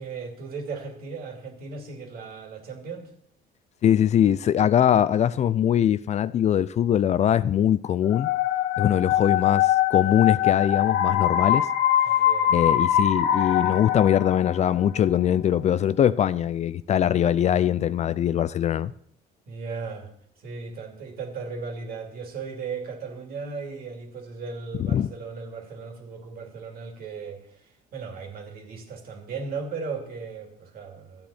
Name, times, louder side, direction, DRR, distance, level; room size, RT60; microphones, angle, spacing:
voice 1, 0.0-3.1 12.0-12.8 19.5-20.1 20.4-31.3, right 4 dB, 60° right, 2.7 m, -36 dB
voice 2, 3.8-8.3 8.8-11.7 12.5-18.9 24.9-25.1, left 10 dB, 40° left, 0.4 m, -22 dB
sound 1, 8.1-14.9, left 11 dB, 80° left, 1.1 m, -23 dB
13.0 x 8.6 x 4.3 m
cardioid pair, 110°, 17 cm